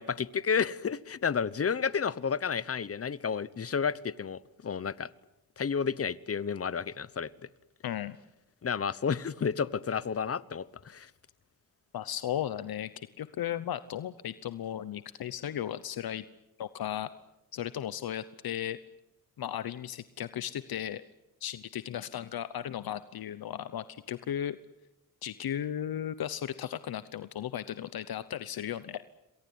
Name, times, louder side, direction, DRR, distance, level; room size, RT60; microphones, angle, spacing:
voice 1, 0.0-5.1 5.6-7.3 8.6-11.1, left 6 dB, 40° left, 18 dB, 1.0 m, -31 dB
voice 2, 7.8-8.2 11.9-16.2 16.6-17.1 17.5-18.8 19.4-21.0 21.4-24.6 25.2-29.0, left 10 dB, 75° left, 14 dB, 1.0 m, -35 dB
27.5 x 22.0 x 9.5 m, 0.94 s
wide cardioid pair, 115°, 36 cm